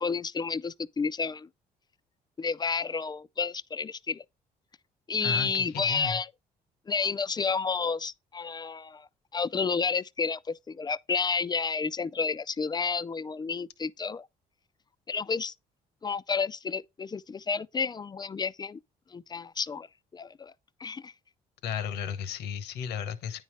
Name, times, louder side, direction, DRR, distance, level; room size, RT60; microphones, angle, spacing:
voice 1, 0.0-1.5 2.4-4.2 5.1-6.3 6.9-14.3 15.1-15.5 16.0-18.8 19.1-19.9 20.1-20.5 20.8-21.1, left 5 dB, 25° left, 0.4 m, -31 dB
voice 2, 5.2-6.2 21.6-23.4, left 8 dB, 85° left, 1.1 m, -34 dB
9.4 x 4.1 x 4.4 m
cardioid pair, 80°, 17 cm